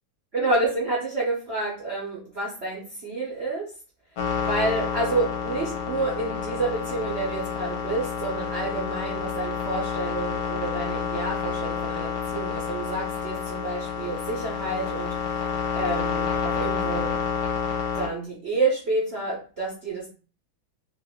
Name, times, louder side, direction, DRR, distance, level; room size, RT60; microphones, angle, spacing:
voice 1, 0.3-3.7 4.4-15.2 15.7-17.2 17.9-20.1, right 2 dB, 75° right, -5 dB, 0.5 m, -29 dB
sound 1, 4.2-18.1, left 7 dB, 70° left, 1.2 m, -29 dB
3.1 x 2.3 x 3.4 m, 0.36 s
omnidirectional pair, 2.2 m